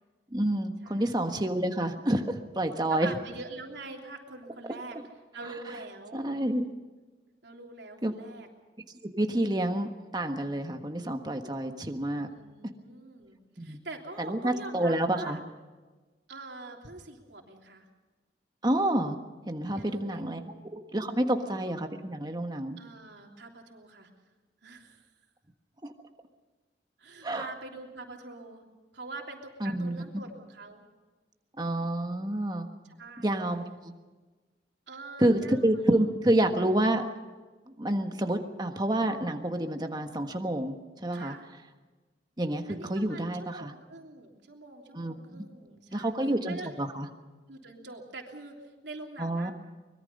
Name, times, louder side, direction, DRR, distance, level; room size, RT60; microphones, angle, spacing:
voice 1, 0.3-3.1 6.1-6.6 8.0-8.1 9.0-12.3 13.6-13.8 14.2-15.4 18.6-19.2 19.5-20.4 20.7-22.8 25.8-25.9 27.2-27.5 29.6-30.0 31.6-32.7 33.2-33.9 35.2-37.0 37.8-40.7 41.0-41.3 42.4-43.7 44.9-45.4 45.9-47.1 49.2-49.5, right 1 dB, 25° right, 5 dB, 1.4 m, -28 dB
voice 2, 0.8-1.4 2.6-5.0 5.3-6.2 7.4-8.5 12.1-15.4 16.3-17.9 19.7-20.6 21.3-21.6 22.8-24.1 24.6-25.1 27.0-28.6 28.9-30.8 32.8-33.4 34.9-36.0 41.1-41.5 42.7-46.7 47.5-49.5, right 3 dB, 75° right, 1 dB, 3.2 m, -45 dB
24.0 x 21.5 x 5.4 m, 1.3 s
head